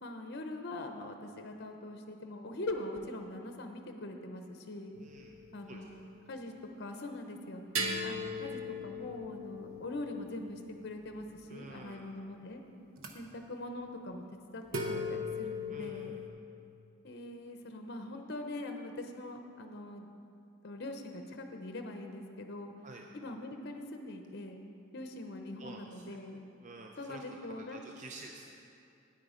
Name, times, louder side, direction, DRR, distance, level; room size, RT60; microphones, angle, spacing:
voice 1, 0.0-4.9 5.5-7.6 8.0-12.6 13.1-14.2 14.5-16.1 17.0-20.1 20.6-22.7 23.1-24.6 24.9-26.4 27.0-27.9, left 2 dB, 55° left, 5 dB, 0.7 m, -42 dB
sound 1, 4.9-6.1 7.7-11.5 13.0-13.1 14.7-16.3, left 2 dB, 80° right, 0.8 m, -39 dB
voice 2, 5.0-5.3 5.7-5.8 11.5-12.1 15.7-16.2 22.8-23.0 25.6-26.2 26.6-27.4 27.7-28.7, right 3 dB, 40° right, 2 dB, 0.5 m, -49 dB
9.3 x 8.7 x 5.0 m, 2.5 s
head